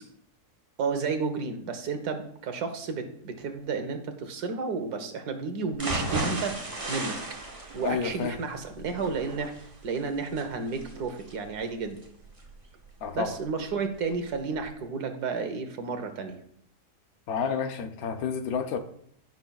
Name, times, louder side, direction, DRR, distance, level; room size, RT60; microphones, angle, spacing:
voice 1, 0.8-6.6 6.9-7.2 7.7-9.5 9.8-12.0 13.1-16.4, right 4 dB, 85° right, 1.6 m, -32 dB
sound 1, 5.7-13.7 14.1-14.2 14.6-14.7, right 2 dB, 25° right, 1.0 m, -36 dB
voice 2, 7.8-8.4 13.0-13.3 17.3-18.8, left 6 dB, 70° left, 1.2 m, -30 dB
16.0 x 6.0 x 2.4 m
omnidirectional pair, 1.6 m